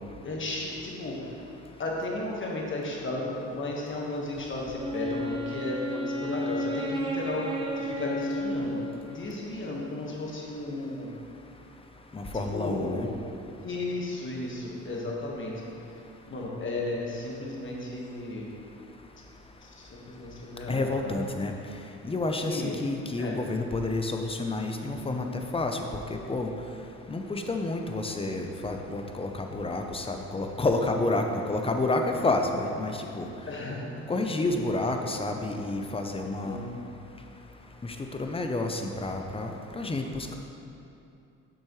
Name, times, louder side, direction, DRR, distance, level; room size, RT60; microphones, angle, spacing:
voice 1, 0.0-1.4 1.8-8.8 9.1-11.1 12.3-13.0 13.6-15.7 16.3-18.5 19.6-21.3 22.4-22.7 23.2-23.4 33.5-34.1 36.4-36.8, left 2 dB, 40° left, -2 dB, 1.5 m, -34 dB
Wind instrument woodwind instrument, 4.7-9.6, equal, 15° right, 0.8 m, -32 dB
voice 2, 12.1-13.1 20.7-21.5 22.0-25.8 26.1-26.5 27.1-33.3 34.1-36.6 37.8-40.4, left 2 dB, 20° left, 4 dB, 0.7 m, -29 dB
8.5 x 6.2 x 3.1 m, 2.7 s
cardioid pair, 90°, 30 cm